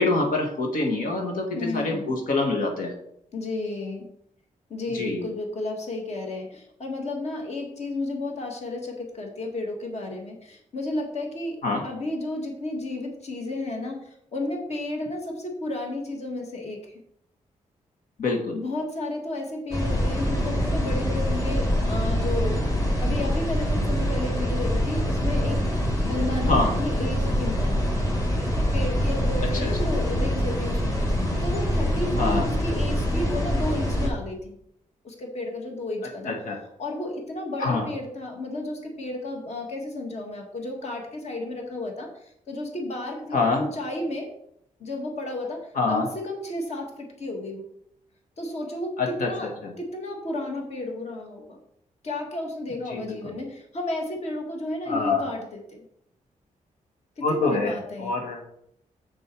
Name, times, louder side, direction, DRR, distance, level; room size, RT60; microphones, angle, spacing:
voice 1, 0.0-2.9 4.9-5.2 11.6-11.8 18.2-18.6 26.5-26.7 29.6-29.7 32.2-32.4 36.2-36.6 37.6-37.9 43.3-43.6 45.7-46.1 49.0-49.3 49.6-49.7 52.9-53.3 54.9-55.2 57.2-58.4, left 3 dB, 90° left, 1 dB, 1.7 m, -25 dB
voice 2, 1.5-2.1 3.3-4.1 4.7-17.0 18.5-25.6 26.0-28.0 28.5-34.6 35.0-36.4 36.8-44.3 44.8-47.7 48.4-49.5 49.8-51.6 52.0-55.9 57.2-58.2, left 2 dB, 50° left, 1 dB, 1.9 m, -32 dB
sound 1, 19.7-34.1, equal, 25° left, 2.2 m, -25 dB
7.7 x 6.9 x 4.6 m, 0.72 s
wide cardioid pair, 145°, 14 cm